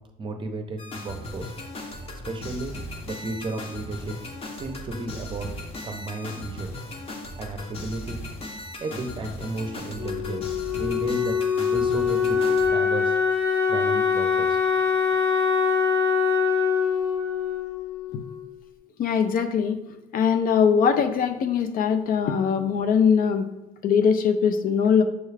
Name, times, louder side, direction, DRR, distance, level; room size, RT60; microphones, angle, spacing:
voice 1, 0.2-1.5 2.3-2.7 3.0-4.2 4.5-5.5 5.8-6.7 7.4-8.2 8.8-10.5 10.8-11.4 11.7-13.2 13.7-14.8, right 2 dB, 30° right, 5 dB, 0.6 m, -33 dB
sound 1, 0.8-12.7, left 1 dB, 35° left, 0.8 m, -37 dB
Wind instrument woodwind instrument, 10.0-18.7, left 6 dB, 85° left, 1.5 m, -24 dB
voice 2, 19.0-19.8 20.1-23.5 23.8-25.0, left 6 dB, 55° left, 8 dB, 0.4 m, -21 dB
6.3 x 2.3 x 3.3 m, 0.99 s
cardioid pair, 110°, 17 cm